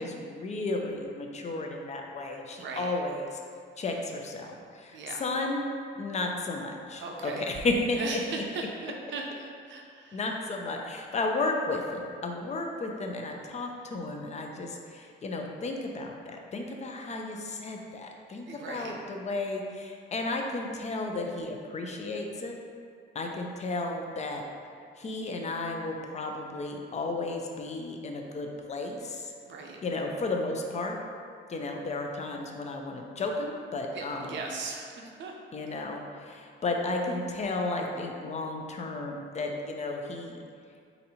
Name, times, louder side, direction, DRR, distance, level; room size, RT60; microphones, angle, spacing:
voice 1, 0.0-3.4 3.8-5.6 6.0-8.2 10.1-22.6 23.1-24.4 25.0-29.3 29.8-31.0 31.5-34.4 35.5-40.4, left 2 dB, 35° left, 2 dB, 0.5 m, -33 dB
voice 2, 2.5-2.9 4.9-5.2 7.0-7.5 8.0-10.2 18.5-18.9 29.5-29.8 33.9-35.3, right 3 dB, 70° right, 0 dB, 0.7 m, -38 dB
4.0 x 2.7 x 4.2 m, 2.3 s
cardioid pair, 90°, 20 cm